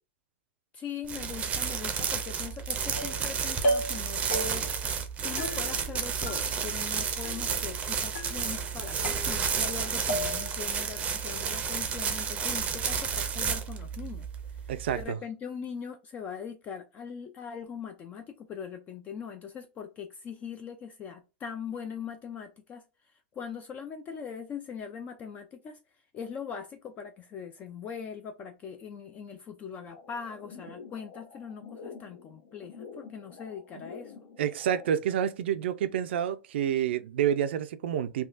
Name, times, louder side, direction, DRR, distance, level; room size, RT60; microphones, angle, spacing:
voice 1, 0.7-4.7 5.2-34.1, left 7 dB, 25° left, 0.4 m, -41 dB
sound 1, 1.0-15.0, right 6 dB, 20° right, 0.6 m, -31 dB
sound 2, 3.0-3.3 3.6-4.0 4.3-4.8 5.4-6.0 6.3-6.9 7.2-7.8 8.1-8.7 9.0-9.7 10.1-10.6, right 1 dB, 85° left, 1.2 m, -34 dB
voice 2, 14.7-15.2 34.4-38.3, right 9 dB, 80° right, 0.5 m, -28 dB
sound 3, 29.9-34.9, left 5 dB, 65° left, 1.0 m, -48 dB
3.5 x 2.3 x 2.5 m
supercardioid pair, 145°, 6 cm